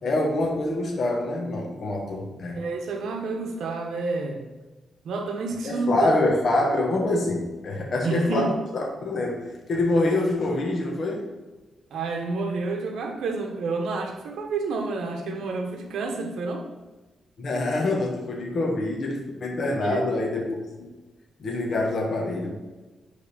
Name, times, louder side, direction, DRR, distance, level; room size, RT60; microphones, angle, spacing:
voice 1, 0.0-2.6 5.6-11.2 17.4-20.9 21.4-22.5, left 2 dB, 45° left, 0 dB, 1.3 m, -25 dB
voice 2, 2.5-4.5 5.0-6.1 8.0-8.5 11.9-16.6 19.8-20.1, right 3 dB, 90° right, 2 dB, 1.2 m, -29 dB
9.8 x 3.5 x 4.2 m, 1.2 s
wide cardioid pair, 160°, 0 cm